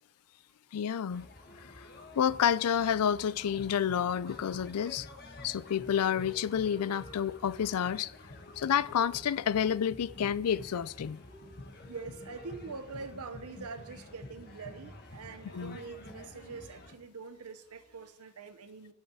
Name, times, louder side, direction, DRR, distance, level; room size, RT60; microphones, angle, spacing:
voice 1, 0.7-1.3 1.6-1.9 2.2-5.1 5.4-8.1 8.6-11.2 15.5-15.8, left 8 dB, 80° left, 0.4 m, -29 dB
sound 1, 1.1-17.0, left 2 dB, 45° left, 1.3 m, -49 dB
sound 2, 1.4-18.1, left 1 dB, 25° left, 1.7 m, -59 dB
voice 2, 11.9-18.9, right 4 dB, 75° right, 0.8 m, -44 dB
11.0 x 5.6 x 8.7 m
head